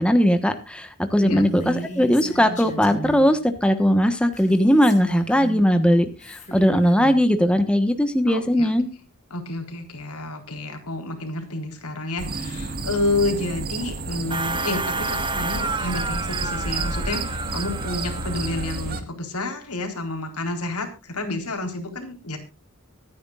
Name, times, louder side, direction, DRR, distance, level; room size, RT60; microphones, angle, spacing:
voice 1, 0.0-8.9, equal, 5° left, 8 dB, 1.2 m, -19 dB
Female speech woman speaking, 1.4-3.3 4.3-5.7 6.2-7.2, right 2 dB, 35° left, 5.0 m, -34 dB
voice 2, 8.3-8.7 9.3-22.4, left 2 dB, 80° left, 4 dB, 4.0 m, -29 dB
sound 1, 12.2-19.0, right 2 dB, 45° right, 1.7 m, -31 dB
sound 2, 14.3-18.8, right 3 dB, 20° right, 1.0 m, -30 dB
24.5 x 9.7 x 2.4 m, 0.30 s
head